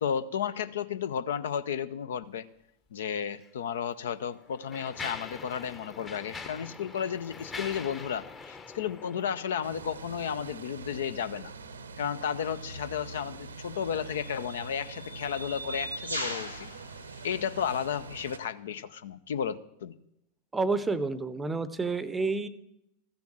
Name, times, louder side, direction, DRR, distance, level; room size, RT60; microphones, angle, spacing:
voice 1, 0.0-2.5 2.9-11.5 12.0-16.7 17.2-19.9, left 8 dB, 60° left, 15 dB, 0.5 m, -33 dB
Mechanisms, 3.3-3.5 4.2-10.0, left 4 dB, 20° left, 0.9 m, -43 dB
sound 1, 9.6-18.4, right 4 dB, 70° right, 0.7 m, -44 dB
sound 2, 12.6-12.7 13.8-18.0, equal, 90° left, 1.2 m, -40 dB
voice 2, 20.5-22.5, right 3 dB, 10° right, 16 dB, 0.6 m, -29 dB
14.0 x 7.0 x 7.6 m, 0.81 s
figure-of-eight pair, 90°, 0 cm